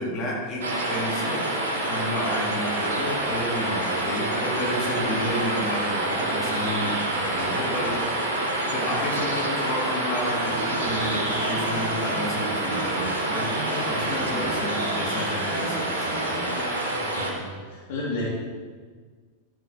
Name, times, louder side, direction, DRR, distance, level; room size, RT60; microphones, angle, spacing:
voice 1, 0.0-1.5 1.9-8.1 8.7-16.5, left 1 dB, 30° left, -5 dB, 3.3 m, -31 dB
sound 1, 0.6-17.3, right 1 dB, 65° right, 2.2 m, -27 dB
sound 2, 10.4-17.3, right 1 dB, 85° left, 2.3 m, -36 dB
voice 2, 17.0-18.3, left 2 dB, 50° left, -5 dB, 3.2 m, -33 dB
13.0 x 7.7 x 4.5 m, 1.5 s
figure-of-eight pair, 90°, 0 cm